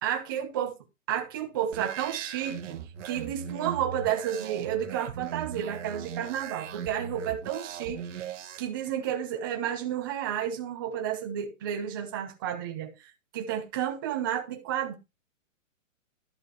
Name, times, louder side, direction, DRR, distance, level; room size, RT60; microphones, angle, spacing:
voice 1, 0.0-0.7 1.1-2.8 3.0-8.2 8.6-14.9, right 10 dB, 15° right, 0.7 m, -31 dB
sound 1, 1.7-8.6, right 8 dB, 65° right, 1.3 m, -39 dB
11.5 x 7.9 x 3.0 m
hypercardioid pair, 175°, 39 cm